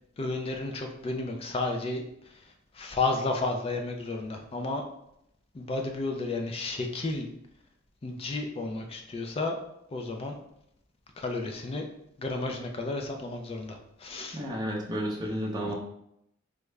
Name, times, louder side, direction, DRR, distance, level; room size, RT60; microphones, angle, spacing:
voice 1, 0.2-2.4 2.7-4.8 5.5-7.3 8.0-9.6 9.9-10.4 11.2-11.9 12.2-14.4, left 3 dB, 30° left, 4 dB, 0.3 m, -32 dB
voice 2, 14.3-15.7, equal, 20° right, -3 dB, 0.6 m, -31 dB
3.5 x 2.1 x 3.2 m, 0.78 s
head